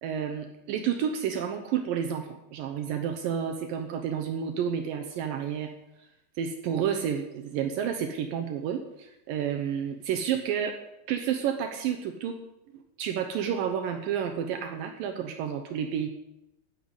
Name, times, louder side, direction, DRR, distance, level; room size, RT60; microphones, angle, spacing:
voice 1, 0.0-5.7 6.4-10.8 11.1-12.4 13.0-16.1, right 8 dB, 90° right, 5 dB, 2.0 m, -30 dB
10.0 x 9.3 x 8.1 m, 0.89 s
omnidirectional pair, 5.3 m